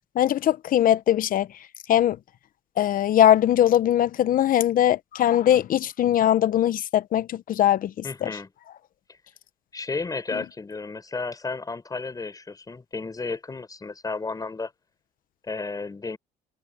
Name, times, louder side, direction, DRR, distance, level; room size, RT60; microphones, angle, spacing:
voice 1, 0.1-1.5 1.9-2.2 2.8-7.9 8.2-8.3, left 11 dB, 55° left, 1.0 m, -20 dB
voice 2, 8.0-8.5 9.7-14.7 15.4-16.2, left 4 dB, 20° left, 4.9 m, -33 dB
cardioid pair, 110°, 17 cm